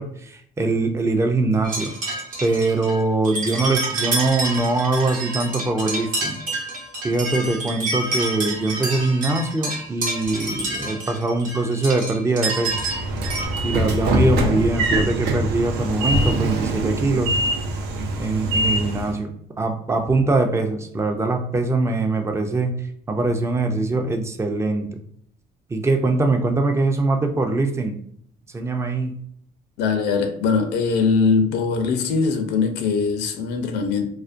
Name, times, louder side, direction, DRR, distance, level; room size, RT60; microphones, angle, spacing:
voice 1, 0.0-1.9 2.4-6.4 7.0-12.9 13.6-17.4 18.2-22.8 23.1-24.9 25.7-28.0 28.5-29.2, right 3 dB, 15° right, 0.4 m, -22 dB
sound 1, 1.6-13.5, right 2 dB, 50° right, 0.8 m, -28 dB
Train / Sliding door, 12.7-19.2, right 1 dB, 80° right, 0.5 m, -23 dB
voice 2, 29.8-34.1, left 5 dB, 80° left, 0.5 m, -21 dB
2.4 x 2.1 x 2.4 m
cardioid pair, 110°, 17 cm